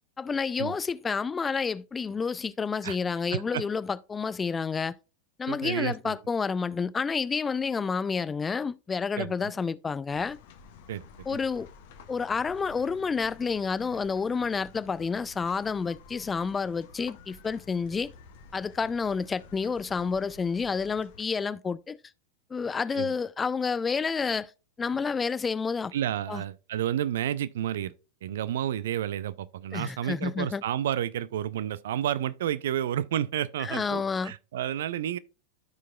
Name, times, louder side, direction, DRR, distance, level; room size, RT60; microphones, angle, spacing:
voice 1, 0.2-4.9 5.4-10.4 11.3-11.7 12.1-18.1 18.5-22.0 22.5-24.5 24.8-25.9 26.3-26.4 29.7-30.6 33.6-34.3, left 5 dB, 15° left, 0.3 m, -29 dB
voice 2, 3.3-3.6 5.5-6.2 9.2-9.5 10.9-11.4 22.9-23.1 25.9-27.9 28.2-35.2, right 11 dB, 60° right, 0.4 m, -31 dB
sound 1, 10.1-21.2, left 5 dB, 50° left, 0.9 m, -51 dB
13.5 x 4.7 x 2.3 m
figure-of-eight pair, 90°, 0 cm